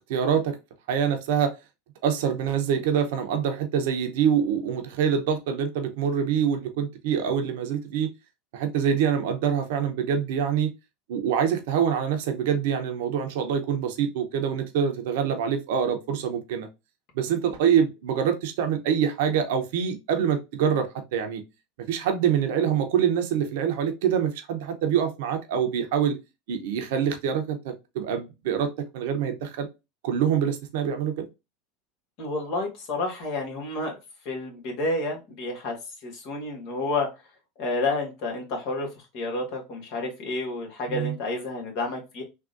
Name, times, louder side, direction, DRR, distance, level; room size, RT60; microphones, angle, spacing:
voice 1, 0.1-0.6 0.9-1.5 2.0-8.1 8.5-10.7 11.1-16.7 17.1-21.4 21.9-26.2 26.5-29.7 30.0-31.3 40.9-41.1, right 8 dB, 70° right, 0.7 m, -25 dB
voice 2, 32.2-34.0 34.2-37.1 37.6-38.9 39.1-42.2, left 2 dB, 55° left, 1.6 m, -30 dB
3.6 x 2.4 x 2.5 m
hypercardioid pair, 85°, 0 cm